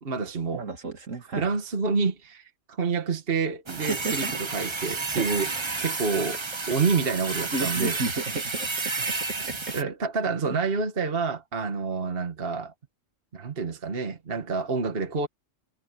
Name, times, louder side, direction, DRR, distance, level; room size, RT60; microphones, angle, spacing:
voice 1, 0.0-0.7 1.4-5.5 5.8-6.4 6.7-8.0 9.7-12.7 13.3-15.3, right 4 dB, 50° right, 1.7 m, -28 dB
voice 2, 0.5-1.5 3.9-4.3 5.2-5.3 7.5-8.7 10.5-10.6, right 3 dB, 80° right, 3.2 m, -32 dB
sound 1, 3.7-9.8, right 3 dB, 25° right, 0.9 m, -31 dB
omnidirectional pair, 1.3 m